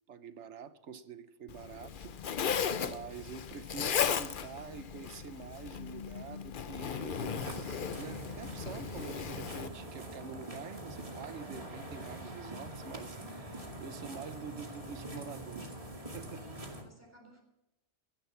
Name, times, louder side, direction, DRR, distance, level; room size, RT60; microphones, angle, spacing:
voice 1, 0.1-2.4 2.8-15.7 16.1-16.4, right 6 dB, 70° right, 12 dB, 1.2 m, -46 dB
Zipper (clothing), 1.5-9.7, left 7 dB, 50° left, 0.8 m, -36 dB
sound 1, 7.1-16.8, right 1 dB, 30° right, 2.3 m, -44 dB
voice 2, 16.3-17.4, equal, 10° left, 1 dB, 3.9 m, -57 dB
16.0 x 11.5 x 5.8 m, 0.87 s
omnidirectional pair, 1.2 m